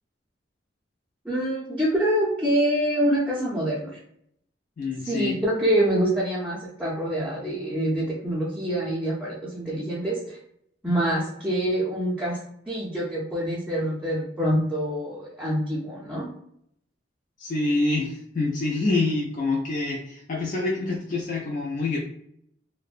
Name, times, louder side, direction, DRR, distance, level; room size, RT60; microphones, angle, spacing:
voice 1, 1.2-3.9 5.1-10.4 10.8-12.4 12.7-16.3, right 1 dB, 5° right, -8 dB, 0.5 m, -25 dB
voice 2, 4.8-5.4 17.4-22.0, left 3 dB, 50° left, -3 dB, 0.4 m, -26 dB
2.6 x 2.1 x 2.4 m, 0.71 s
head